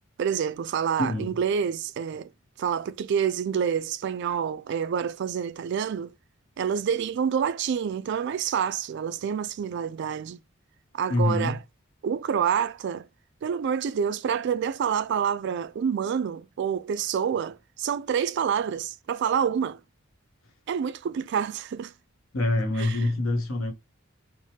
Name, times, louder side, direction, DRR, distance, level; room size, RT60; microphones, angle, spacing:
voice 1, 0.2-2.3 2.6-6.1 6.6-10.4 10.9-11.6 12.0-13.1 13.4-19.8 20.7-21.9 22.8-23.1, right 7 dB, 55° right, 0.3 m, -27 dB
voice 2, 11.1-11.6 22.3-23.7, left 2 dB, 85° left, 1.0 m, -25 dB
4.5 x 2.2 x 2.8 m
head